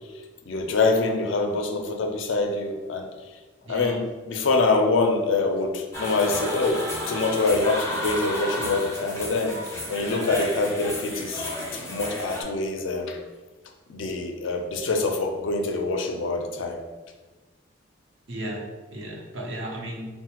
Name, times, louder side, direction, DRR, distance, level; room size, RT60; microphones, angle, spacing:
voice 1, 0.5-3.1 3.7-4.0 4.3-13.2 13.9-16.8, left 3 dB, 70° left, 3 dB, 0.4 m, -25 dB
voice 2, 3.6-4.0 18.3-20.1, right 1 dB, 65° right, -1 dB, 0.6 m, -35 dB
sound 1, 5.9-12.4, left 1 dB, 15° left, 0.5 m, -32 dB
4.0 x 2.1 x 2.9 m, 1.2 s
head